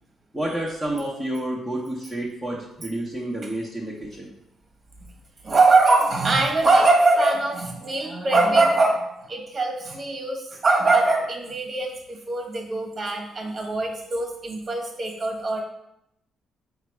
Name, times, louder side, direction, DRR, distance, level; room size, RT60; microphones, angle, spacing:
voice 1, 0.3-4.3, right 1 dB, 5° left, -7 dB, 1.0 m, -29 dB
voice 2, 5.4-15.6, right 3 dB, 35° right, 1 dB, 1.1 m, -22 dB
5.0 x 2.3 x 4.4 m, 0.81 s
cardioid pair, 90°, 0 cm